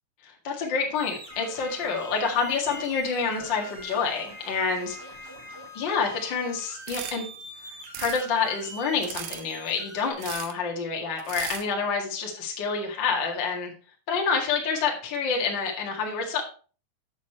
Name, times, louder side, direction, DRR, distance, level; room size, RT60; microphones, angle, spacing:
voice 1, 0.2-5.1 5.7-7.3 8.0-13.7 14.1-16.4, left 5 dB, 90° left, 0 dB, 1.0 m, -28 dB
sound 1, 0.9-10.1, right 1 dB, 25° right, 1.0 m, -45 dB
sound 2, 1.3-5.7, right 1 dB, 60° right, 1.4 m, -45 dB
sound 3, 6.9-7.2 7.8-8.2 9.0-9.4 10.2-10.5 11.2-11.6, right 11 dB, 75° right, 2.9 m, -36 dB
8.1 x 6.6 x 4.4 m, 0.38 s
omnidirectional pair, 5.6 m